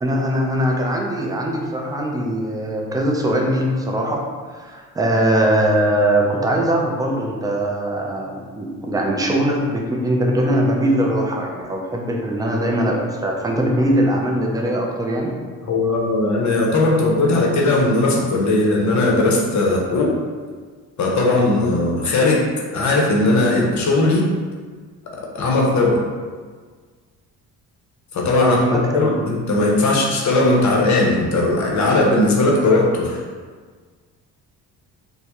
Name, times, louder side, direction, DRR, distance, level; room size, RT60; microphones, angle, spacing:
voice 1, 0.0-15.4 28.4-28.8, right 1 dB, 10° right, -1 dB, 0.3 m, -21 dB
voice 2, 15.6-20.2 21.0-22.5 22.7-24.2 25.3-26.0 28.1-33.2, left 2 dB, 45° left, -1 dB, 0.7 m, -18 dB
2.1 x 2.0 x 2.9 m, 1.5 s
supercardioid pair, 60°, 41 cm